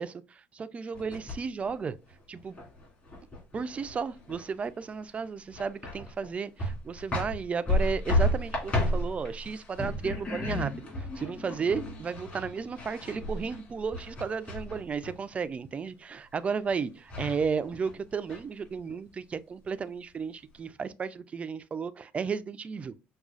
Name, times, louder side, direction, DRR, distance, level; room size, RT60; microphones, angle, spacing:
voice 1, 0.0-1.9 2.3-2.5 3.5-10.9 11.2-22.9, right 5 dB, 30° right, 0.4 m, -33 dB
sound 1, 0.9-1.7 2.1-4.7 4.9-5.0 5.5-6.3 6.6-15.1 16.7-16.8 17.1-17.9 18.3-19.0, left 1 dB, 35° left, 2.3 m, -33 dB
6.1 x 2.3 x 2.4 m
cardioid pair, 115°, 5 cm